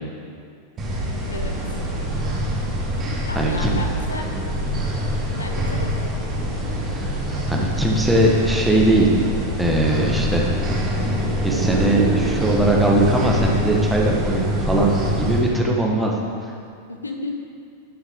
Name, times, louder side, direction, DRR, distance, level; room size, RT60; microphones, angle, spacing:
sound 1, 0.8-15.4, equal, 25° right, 1.8 m, -24 dB
voice 1, 1.2-1.8 3.3-4.3 4.6-4.7 5.3-6.1 16.9-17.3, left 2 dB, 80° left, 3 dB, 0.8 m, -33 dB
voice 2, 3.3-3.8 6.8-7.1 7.5-9.1 9.6-10.5 11.4-16.1 16.4-16.5, right 1 dB, 5° right, -2 dB, 1.3 m, -20 dB
12.0 x 6.4 x 3.6 m, 2.4 s
figure-of-eight pair, 90°, 0 cm